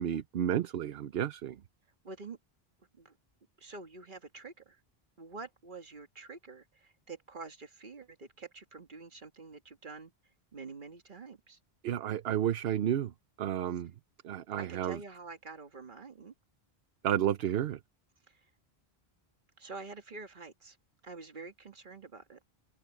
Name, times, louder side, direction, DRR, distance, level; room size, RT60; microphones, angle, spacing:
voice 1, 0.0-1.6 11.8-13.1 13.4-13.9 14.2-15.0 17.0-17.8, right 10 dB, 70° right, 0.9 m, -31 dB
voice 2, 2.0-2.4 2.9-3.2 3.6-4.8 5.2-10.1 10.5-11.6 14.6-16.3 18.3-18.5 19.6-20.8 21.0-22.4, right 4 dB, 50° right, 1.7 m, -47 dB
open air
omnidirectional pair, 1.1 m